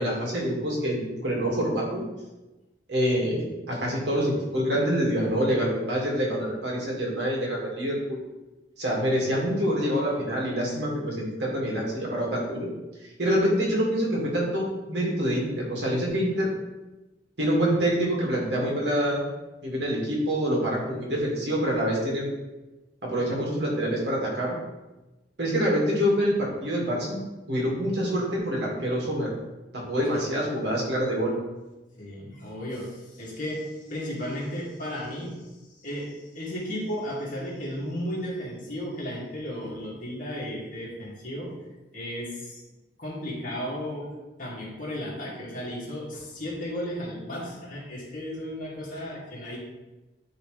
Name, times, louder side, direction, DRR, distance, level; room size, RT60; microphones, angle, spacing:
voice 1, 0.0-2.0 2.9-8.2 8.8-12.7 13.2-16.5 17.4-19.2 19.6-22.3 23.0-24.6 25.4-27.2 27.5-29.3 29.7-31.3, equal, 70° right, -3 dB, 2.1 m, -26 dB
voice 2, 32.0-35.4 35.8-41.5 41.9-42.6 43.0-44.1 44.4-49.6, equal, 50° left, -5 dB, 2.2 m, -34 dB
10.5 x 3.7 x 3.3 m, 1.1 s
head